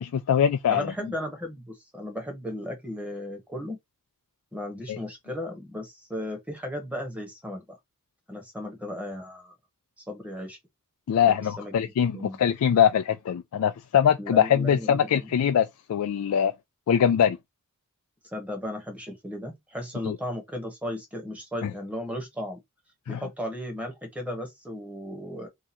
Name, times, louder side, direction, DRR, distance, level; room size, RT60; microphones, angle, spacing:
voice 1, 0.0-0.9 4.9-5.0 11.1-16.5 16.9-17.4 20.0-20.2 21.6-21.7 23.1-23.2, left 8 dB, 80° left, 0.3 m, -23 dB
voice 2, 0.7-3.8 4.5-7.8 8.3-9.5 10.1-10.6 11.4-12.4 14.2-15.3 18.3-22.6 23.1-25.5, left 1 dB, 5° right, 1.1 m, -35 dB
2.8 x 2.4 x 4.1 m
head